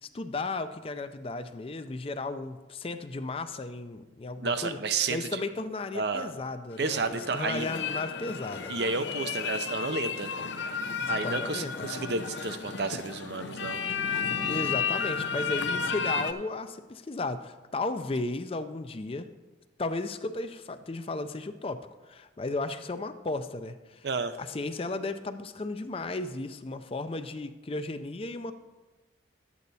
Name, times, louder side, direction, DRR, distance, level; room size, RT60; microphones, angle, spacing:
voice 1, 0.0-4.8 5.1-8.7 11.1-11.9 14.5-19.3 19.8-24.1 24.4-28.5, left 2 dB, 30° left, 10 dB, 0.4 m, -34 dB
voice 2, 4.4-5.4 5.9-6.3 6.8-7.7 8.7-10.3 11.1-13.8 24.0-24.4, right 4 dB, 60° right, 10 dB, 0.6 m, -31 dB
sound 1, 6.7-16.3, left 6 dB, 70° left, 0.6 m, -33 dB
11.5 x 8.4 x 4.1 m, 1.2 s
head